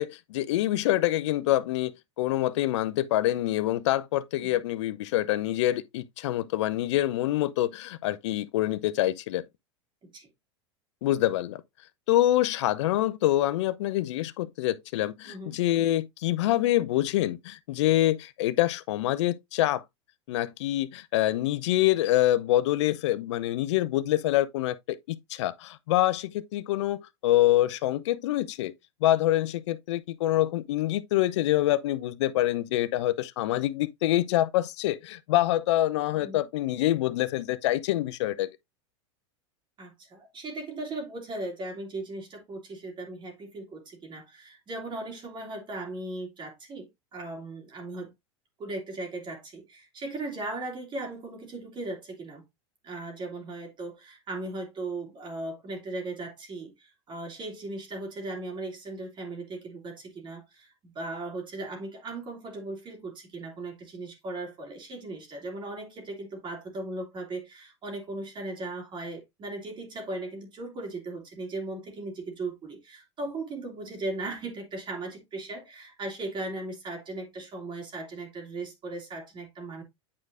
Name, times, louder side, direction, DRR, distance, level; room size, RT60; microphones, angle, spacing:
voice 1, 0.0-9.4 11.0-11.6 12.1-19.8 20.3-28.7 29.0-38.5, left 14 dB, 75° left, 0.5 m, -26 dB
voice 2, 39.8-48.1 48.6-52.4 52.8-79.8, right 2 dB, 30° right, 2.9 m, -37 dB
8.7 x 4.7 x 2.5 m
hypercardioid pair, 105°, 15 cm